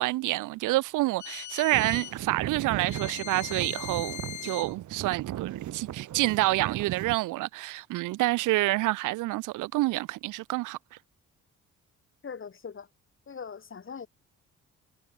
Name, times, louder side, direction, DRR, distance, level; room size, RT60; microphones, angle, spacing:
voice 1, 0.0-10.8, right 19 dB, 90° right, 0.7 m, -28 dB
sound 1, 1.2-2.2 2.9-4.7, left 12 dB, 75° left, 2.2 m, -40 dB
sound 2, 1.7-7.2, right 12 dB, 75° right, 2.4 m, -36 dB
voice 2, 12.2-12.9 13.3-14.1, left 6 dB, 40° left, 7.8 m, -40 dB
cardioid pair, 90°, 30 cm